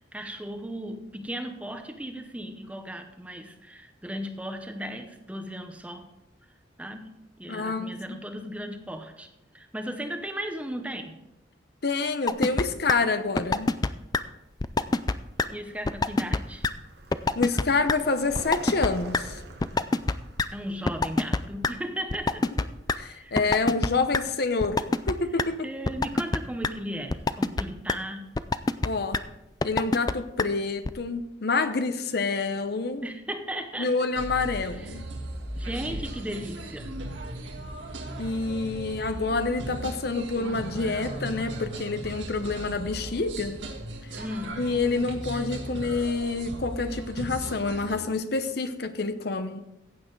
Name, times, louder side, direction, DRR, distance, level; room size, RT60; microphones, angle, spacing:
voice 1, 0.0-6.1 6.8-11.2 15.5-16.7 20.5-22.4 22.9-23.4 25.6-28.4 33.0-33.9 34.8-35.0 35.6-36.9 44.2-44.6, equal, 5° right, 6 dB, 0.8 m, -36 dB
voice 2, 7.5-8.2 11.8-13.8 17.3-19.4 23.0-25.7 28.8-29.2 29.6-33.0 33.8-35.1 38.2-43.6 44.6-49.6, left 3 dB, 55° left, 10 dB, 0.8 m, -28 dB
sound 1, 12.3-12.6 12.9-13.0 13.4-13.9 14.1-14.2 14.6-15.1 15.4-15.5 15.9-16.4 16.6-16.7 17.1-17.6 17.9-18.0 18.4-18.9 19.1-19.2 19.6-20.1 20.4-20.5 20.9-21.7 22.1-23.0 23.4-23.9 24.1-24.2 24.6-25.1 25.4-25.5 25.9-26.4 26.6-26.7 27.1-27.6 27.9-28.0 28.4-28.9 29.1-29.2 29.6-30.1 30.4-30.5 30.9-31.0, left 3 dB, 20° left, 0.3 m, -23 dB
Vehicle, 15.2-23.6, right 2 dB, 60° right, 1.2 m, -47 dB
sound 2, 34.2-48.0, right 1 dB, 80° right, 1.7 m, -37 dB
15.0 x 8.7 x 3.9 m, 0.92 s
head